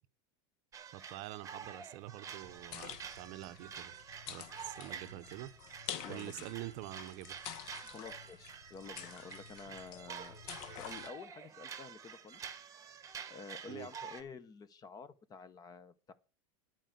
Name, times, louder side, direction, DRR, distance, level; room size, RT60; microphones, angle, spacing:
sound 1, 0.7-14.2, right 7 dB, 20° right, 1.2 m, -49 dB
voice 1, 0.9-3.9 4.3-5.5 6.1-7.4 13.7-13.9, right 16 dB, 50° right, 0.7 m, -46 dB
sound 2, 2.4-11.1, left 10 dB, 55° left, 0.9 m, -49 dB
voice 2, 6.0-6.5 7.8-10.4 10.7-12.4 12.7-12.9 13.3-16.1, left 5 dB, 25° left, 0.7 m, -50 dB
11.0 x 4.5 x 7.7 m
supercardioid pair, 125°, 16 cm